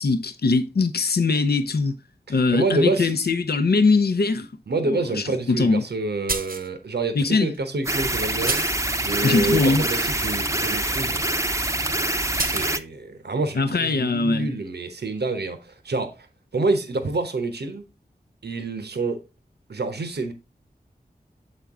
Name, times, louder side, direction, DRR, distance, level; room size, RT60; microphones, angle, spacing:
voice 1, 0.0-2.0 2.3-4.5 4.8-5.8 7.1-7.5 9.2-9.8 13.5-14.5, left 3 dB, 75° left, 0.6 m, -21 dB
voice 2, 2.5-3.3 4.7-8.6 9.0-11.2 12.3-16.3 16.5-17.8 18.4-19.2 19.7-20.3, right 3 dB, 85° right, 0.9 m, -27 dB
sound 1, 6.3-6.7 7.5-7.6 8.5-8.9 12.4-12.7, right 3 dB, 60° right, 0.8 m, -28 dB
sound 2, 7.9-12.8, right 2 dB, 20° right, 0.6 m, -25 dB
7.2 x 4.4 x 3.5 m
wide cardioid pair, 45°, 17 cm